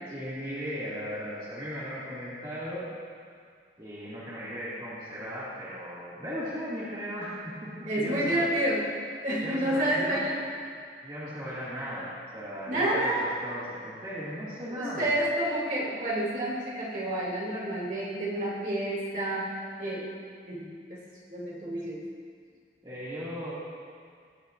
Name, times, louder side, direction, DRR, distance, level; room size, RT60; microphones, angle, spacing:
voice 1, 0.1-2.9 3.8-8.5 9.4-10.5 11.0-15.1 22.8-23.5, equal, 25° right, -11 dB, 2.3 m, -37 dB
voice 2, 7.9-8.8 9.2-10.4 12.7-13.3 14.7-19.5 19.8-20.1 20.5-21.0 21.3-22.0, right 1 dB, 45° right, -6 dB, 2.7 m, -29 dB
18.0 x 10.5 x 2.6 m, 2.1 s
head